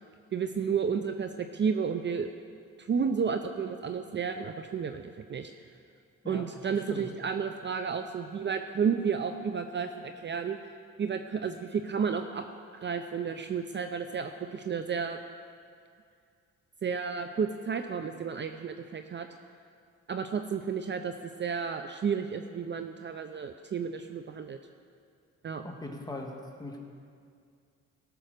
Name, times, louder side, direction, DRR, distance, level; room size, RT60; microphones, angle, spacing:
voice 1, 0.3-2.3 2.8-5.0 5.3-5.5 6.3-10.7 11.0-12.5 12.7-15.2 16.8-19.3 20.1-21.1 21.4-24.6 25.4-25.6, right 6 dB, 40° right, 7 dB, 0.6 m, -32 dB
voice 2, 6.2-7.1 25.6-26.3 26.6-26.8, left 2 dB, 15° left, 1 dB, 1.9 m, -40 dB
17.0 x 6.2 x 6.6 m, 2.3 s
cardioid pair, 90°, 30 cm